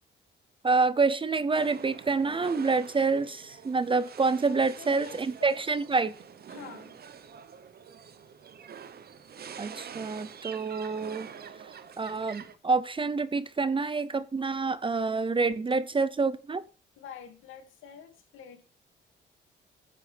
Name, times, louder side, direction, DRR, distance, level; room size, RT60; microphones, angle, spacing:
voice 1, 0.6-6.1 9.6-11.3 12.0-16.6, right 4 dB, 25° right, 15 dB, 0.6 m, -27 dB
sound 1, 1.5-12.5, right 7 dB, 50° right, 1.0 m, -46 dB
voice 2, 4.4-5.6 6.5-7.0 15.4-15.5 17.0-18.6, left 7 dB, 85° left, 5 dB, 2.4 m, -47 dB
10.0 x 6.7 x 3.4 m, 0.36 s
cardioid pair, 90°, 20 cm